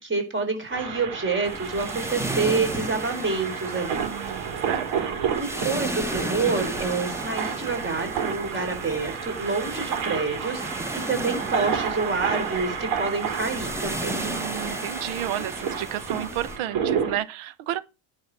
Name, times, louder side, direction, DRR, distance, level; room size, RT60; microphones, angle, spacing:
voice 1, 0.0-4.1 5.4-14.2, right 4 dB, 25° right, 4.3 m, -28 dB
sound 1, 0.7-17.2, right 7 dB, 90° right, 4.1 m, -31 dB
sound 2, 1.4-16.6, right 1 dB, 5° right, 1.2 m, -35 dB
voice 2, 4.0-5.2 14.1-17.8, right 12 dB, 75° right, 1.2 m, -32 dB
10.5 x 5.7 x 6.0 m
cardioid pair, 125°, 49 cm